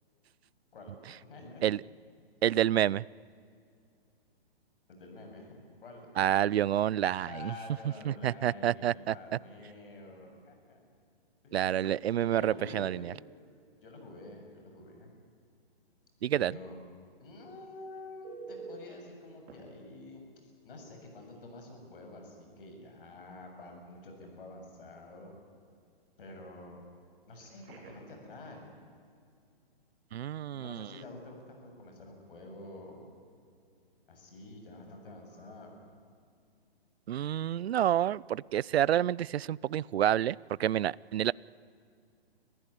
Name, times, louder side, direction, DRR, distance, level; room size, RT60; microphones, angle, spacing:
voice 1, 1.2-1.9 4.9-6.1 7.2-10.8 11.4-11.5 11.8-13.1 13.8-15.1 16.3-16.8 17.2-20.2 20.6-25.3 26.2-26.8 27.3-28.8 30.5-33.1 34.1-35.8, left 2 dB, 60° left, 3 dB, 7.3 m, -48 dB
voice 2, 2.4-3.0 6.2-7.5 8.1-9.1 11.5-13.1 16.2-16.5 30.1-30.9 37.1-41.3, right 11 dB, 85° right, 24 dB, 0.5 m, -28 dB
Telephone, 18.2-18.9 19.5-19.6 21.3-21.5 21.9-22.0 27.3-28.2 35.3-35.5, right 4 dB, 25° right, 4.3 m, -48 dB
26.5 x 15.5 x 10.0 m, 2.3 s
hypercardioid pair, 160°, 30 cm